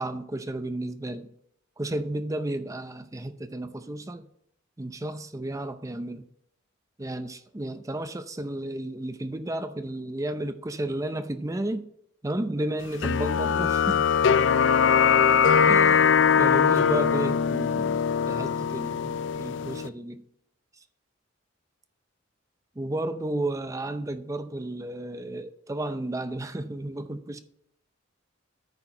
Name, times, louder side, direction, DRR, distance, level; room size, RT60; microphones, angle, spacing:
voice 1, 0.0-1.3 1.8-4.3 4.8-6.3 7.0-11.9 12.2-14.2 15.7-20.3 22.8-27.4, right 1 dB, 15° right, 0.5 m, -33 dB
sound 1, 13.0-19.9, left 7 dB, 60° left, 0.4 m, -21 dB
9.7 x 4.6 x 6.6 m
head